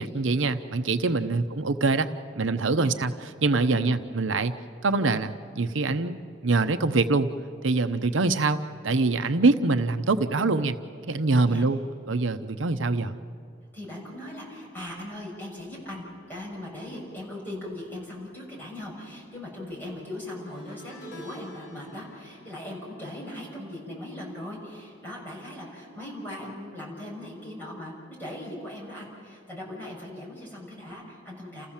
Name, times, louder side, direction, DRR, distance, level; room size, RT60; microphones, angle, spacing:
voice 1, 0.0-2.1 2.4-3.1 3.4-4.5 4.8-7.3 7.6-10.8 11.1-11.8 12.1-13.2, right 3 dB, 85° right, 10 dB, 0.8 m, -24 dB
voice 2, 13.7-31.7, left 1 dB, 10° left, -5 dB, 6.6 m, -39 dB
sound 1, 20.5-25.9 26.1-26.5 27.7-27.8, equal, 60° left, 4.0 m, -52 dB
29.0 x 15.0 x 7.3 m, 2.3 s
head